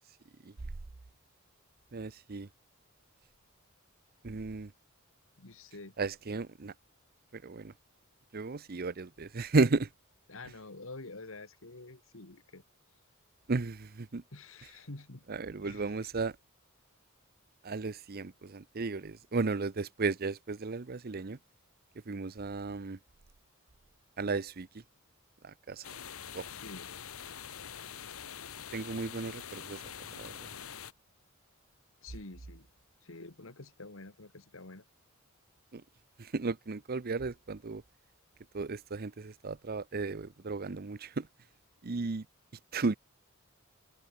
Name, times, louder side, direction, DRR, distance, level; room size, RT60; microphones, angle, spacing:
voice 1, 1.9-2.5 4.2-4.7 6.0-6.7 7.3-7.7 8.3-9.9 13.5-14.2 15.3-16.4 17.6-21.4 22.1-23.0 24.2-24.7 25.4-25.8 26.3-26.4 28.7-29.8 30.2-30.5 35.7-35.8 36.2-37.8 38.5-41.3 41.8-42.3 42.7-43.0, right 3 dB, 45° right, 0.7 m, -34 dB
voice 2, 5.4-5.9 10.3-12.6 14.3-15.2 15.6-16.0 26.5-26.9 32.0-32.7 33.0-34.8, left 2 dB, 70° left, 2.0 m, -48 dB
sound 1, 25.8-30.9, left 8 dB, 85° left, 1.4 m, -45 dB
head